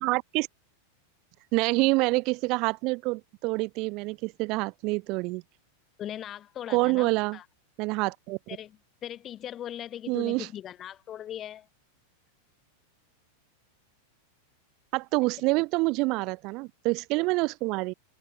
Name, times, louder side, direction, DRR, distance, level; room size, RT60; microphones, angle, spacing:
voice 1, 0.0-0.5 1.5-5.4 6.7-7.4 7.8-8.4 10.1-10.5 14.9-17.9, right 25 dB, 40° right, 0.4 m, -27 dB
voice 2, 6.0-7.4 8.5-8.8 9.0-11.7, left 11 dB, 30° left, 1.9 m, -39 dB
figure-of-eight pair, 90°, 0 cm